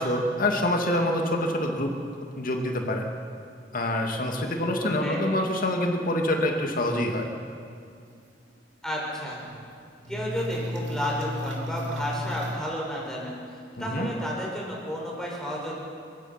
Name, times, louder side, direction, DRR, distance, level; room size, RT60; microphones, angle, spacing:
voice 1, 0.0-2.0 2.4-3.0 3.7-7.3 13.8-14.1, left 1 dB, 50° left, 2 dB, 2.3 m, -26 dB
voice 2, 4.8-5.2 8.8-9.4 10.1-13.4 13.8-15.8, equal, 5° left, -4 dB, 5.4 m, -32 dB
sound 1, 8.1-8.2 8.5-8.6 9.1-9.7 10.0-12.6, left 1 dB, 85° right, 3.4 m, -34 dB
29.5 x 16.0 x 6.0 m, 2.3 s
head